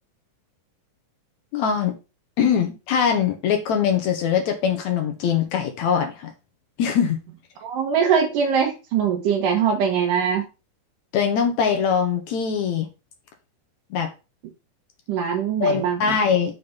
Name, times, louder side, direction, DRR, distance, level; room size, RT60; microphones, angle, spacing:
voice 1, 1.5-2.0 2.4-6.3 6.8-7.2 11.1-12.9 13.9-14.1 15.6-16.6, left 7 dB, 70° left, 2.1 m, -22 dB
voice 2, 7.6-10.4 15.1-16.2, right 7 dB, 80° right, 2.7 m, -22 dB
6.9 x 4.1 x 5.7 m
omnidirectional pair, 3.7 m